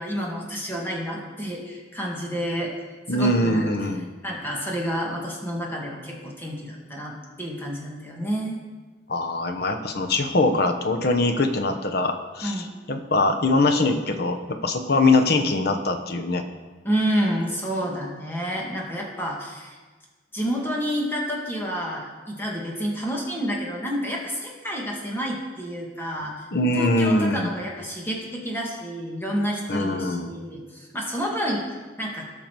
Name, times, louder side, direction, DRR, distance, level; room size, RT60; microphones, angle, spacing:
voice 1, 0.0-2.7 3.1-3.7 4.2-8.6 12.4-12.7 16.8-19.8 20.3-26.3 26.8-31.7 32.0-32.3, equal, 10° left, -2 dB, 2.1 m, -29 dB
voice 2, 3.1-4.0 9.1-14.4 14.6-16.4 26.5-27.5 29.7-30.3, left 2 dB, 55° left, 5 dB, 1.0 m, -22 dB
17.5 x 5.9 x 4.7 m, 1.3 s
head